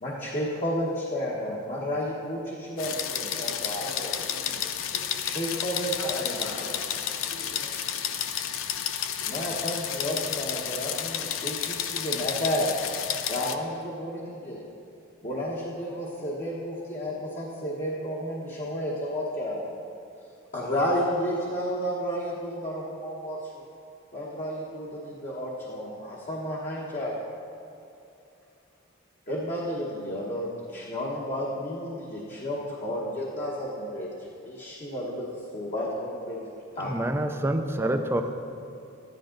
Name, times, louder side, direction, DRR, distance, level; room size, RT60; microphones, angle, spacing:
voice 1, 0.0-4.1 5.2-6.5 9.3-12.7 13.3-14.6 15.2-19.7 20.5-23.5 24.1-27.2 29.3-36.9 37.4-37.5 37.8-38.0, equal, 35° left, -5 dB, 1.2 m, -32 dB
sound 1, 2.8-13.6, left 9 dB, 70° left, 0.6 m, -31 dB
voice 2, 3.1-4.6 4.9-5.1 6.0-7.8, left 1 dB, 85° left, -5 dB, 1.4 m, -43 dB
voice 3, 36.9-38.2, right 1 dB, 10° right, 6 dB, 0.5 m, -26 dB
13.0 x 11.0 x 3.9 m, 2.7 s
head